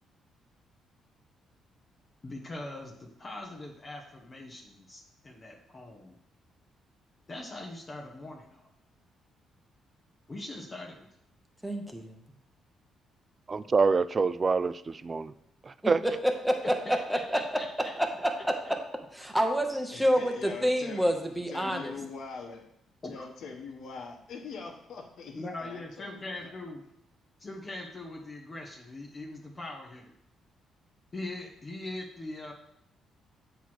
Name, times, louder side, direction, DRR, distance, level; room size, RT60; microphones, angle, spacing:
voice 1, 2.2-6.2 7.3-8.7 10.3-11.1 16.8-17.9 18.6-18.7 21.6-22.0 23.0-23.3 25.3-26.8 27.4-30.1 31.1-32.5, left 2 dB, 30° left, -1 dB, 1.1 m, -41 dB
voice 2, 11.6-12.2 15.8-17.4 17.9-18.5 19.1-21.9, equal, 5° right, 3 dB, 0.9 m, -28 dB
voice 3, 13.5-15.3 15.7-16.0, right 4 dB, 35° right, 15 dB, 0.3 m, -26 dB
voice 4, 19.9-21.1 21.5-22.6 23.0-26.5, left 4 dB, 70° left, 2 dB, 1.3 m, -43 dB
8.1 x 3.1 x 6.0 m, 0.76 s
cardioid pair, 90°, 0 cm